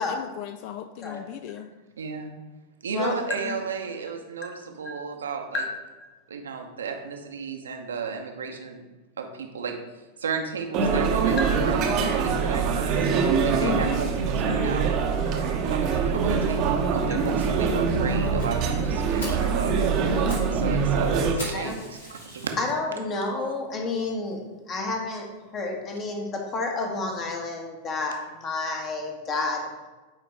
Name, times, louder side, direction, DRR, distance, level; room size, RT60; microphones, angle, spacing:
voice 1, 0.0-1.7 13.6-14.1, left 10 dB, 45° left, 9 dB, 0.3 m, -35 dB
voice 2, 2.0-2.4 2.8-5.6 6.3-8.8 9.2-9.7 10.2-11.4 11.6-13.0 13.4-14.9 15.3-19.7 20.5-22.6, right 5 dB, 70° right, 4 dB, 0.8 m, -34 dB
voice 3, 2.9-3.5 4.8-5.0 5.5-5.7 6.0-6.1 11.4-11.5 19.2-19.6 21.5-21.7 22.6-24.4 24.7-25.3 25.5-29.7, left 3 dB, 30° left, 1 dB, 1.3 m, -30 dB
sound 1, 10.7-21.3, right 5 dB, 40° right, 0.8 m, -24 dB
Fire, 18.4-18.5 18.9-19.0 19.2-19.5 20.0-20.5 20.8-20.9 21.4-22.7 23.3-23.4 23.9-24.0 24.3-24.4 24.7-24.8, equal, 70° left, 2.0 m, -39 dB
9.0 x 4.0 x 3.4 m, 1.2 s
figure-of-eight pair, 90°, 0 cm